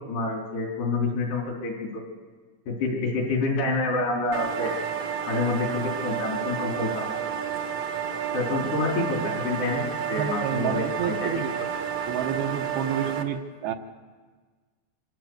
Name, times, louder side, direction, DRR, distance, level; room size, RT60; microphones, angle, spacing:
voice 1, 0.1-2.0 2.7-4.7 5.3-7.1 8.3-11.3, left 2 dB, 75° left, 0 dB, 6.0 m, -27 dB
sound 1, 4.3-13.2, right 7 dB, 55° right, 1.8 m, -31 dB
voice 2, 10.1-11.5 12.1-13.7, right 9 dB, 75° right, 4 dB, 2.7 m, -29 dB
25.0 x 16.5 x 7.9 m, 1.5 s
omnidirectional pair, 4.9 m